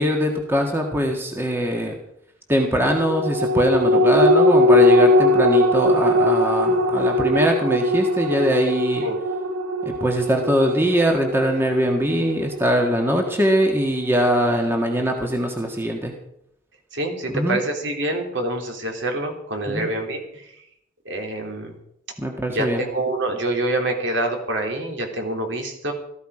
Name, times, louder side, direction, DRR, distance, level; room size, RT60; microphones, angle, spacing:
voice 1, 0.0-1.9 2.5-9.0 9.9-16.1 17.3-17.6 19.7-19.9 22.2-22.9, equal, 10° right, 2 dB, 1.6 m, -22 dB
sound 1, 2.9-13.7 14.1-14.2, left 1 dB, 85° right, 2.1 m, -20 dB
voice 2, 16.9-20.5 21.1-21.8 22.5-25.9, right 1 dB, 60° right, 2 dB, 3.4 m, -26 dB
18.0 x 14.0 x 5.0 m, 0.75 s
head